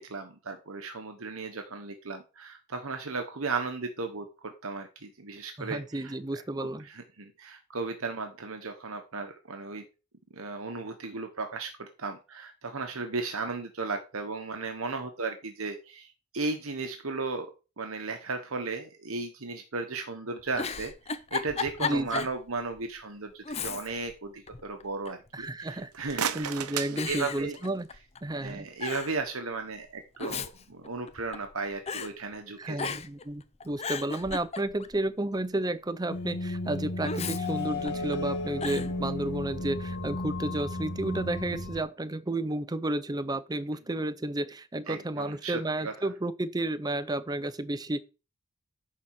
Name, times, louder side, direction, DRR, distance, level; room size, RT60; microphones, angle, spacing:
voice 1, 0.0-9.9 10.3-17.5 17.8-26.5 26.8-27.6 28.4-33.0 44.9-45.9, right 3 dB, 70° right, 1.2 m, -35 dB
voice 2, 5.6-6.9 21.8-22.3 25.3-27.9 28.2-28.7 32.6-48.0, right 1 dB, 15° right, 0.6 m, -32 dB
Giggle, 20.4-22.4 22.8-22.9 23.4-24.1 24.5-25.3 26.0-26.4 27.0-28.2 28.5-28.6 28.8-29.2 30.0-31.5 31.9-32.1 32.8-33.2 33.6-35.0 37.0-38.2 38.6-38.9, left 5 dB, 30° left, 0.6 m, -35 dB
sound 1, 25.8-27.9, right 8 dB, 85° right, 0.8 m, -35 dB
sound 2, 36.1-41.8, left 2 dB, 50° left, 2.1 m, -34 dB
9.9 x 4.2 x 6.4 m
head